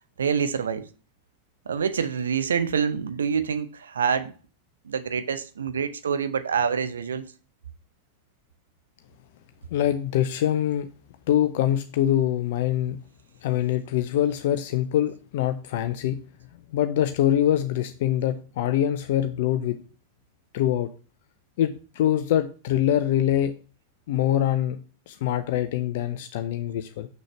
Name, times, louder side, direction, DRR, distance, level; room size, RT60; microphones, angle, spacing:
voice 1, 0.2-0.9 1.7-4.3 4.8-7.2, right 6 dB, 70° right, 0.7 m, -26 dB
voice 2, 9.7-10.9 11.3-13.0 13.4-16.2 16.7-19.8 20.5-20.9 21.6-23.5 24.1-24.8 25.1-27.1, left 11 dB, 55° left, 0.5 m, -24 dB
6.4 x 6.3 x 3.1 m
figure-of-eight pair, 90°, 0 cm